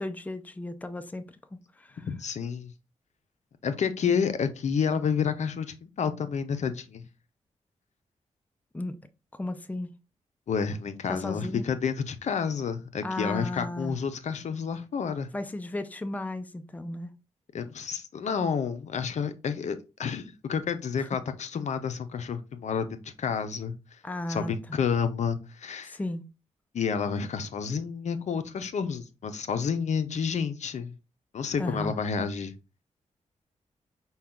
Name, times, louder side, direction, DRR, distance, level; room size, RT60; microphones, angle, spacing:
voice 1, 0.0-2.1 8.7-9.0 9.3-9.9 11.1-11.7 13.0-14.0 15.3-17.1 21.0-21.1 24.0-24.5 25.8-26.3 31.6-31.9, left 1 dB, 10° left, 0.5 m, -35 dB
voice 2, 2.1-2.7 3.6-7.0 10.5-15.3 17.5-23.7 24.3-26.0 26.7-30.9 31.3-32.5, left 6 dB, 65° left, 0.6 m, -30 dB
5.4 x 2.3 x 3.6 m
cardioid pair, 70°, 13 cm